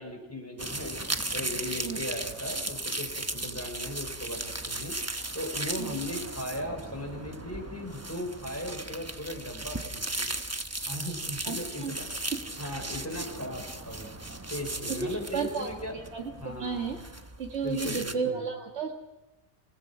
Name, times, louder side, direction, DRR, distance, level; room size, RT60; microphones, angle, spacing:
voice 1, 0.0-4.9 5.3-10.3 10.9-12.1 12.6-14.1 14.5-15.9 16.4-17.0 17.6-18.4, equal, 15° left, 1 dB, 5.5 m, -37 dB
sound 1, 0.6-18.1, right 2 dB, 15° right, 0.9 m, -36 dB
voice 2, 14.9-17.0 17.4-18.9, right 5 dB, 75° right, 0 dB, 2.0 m, -33 dB
27.0 x 18.5 x 6.0 m, 1.0 s
omnidirectional pair, 1.1 m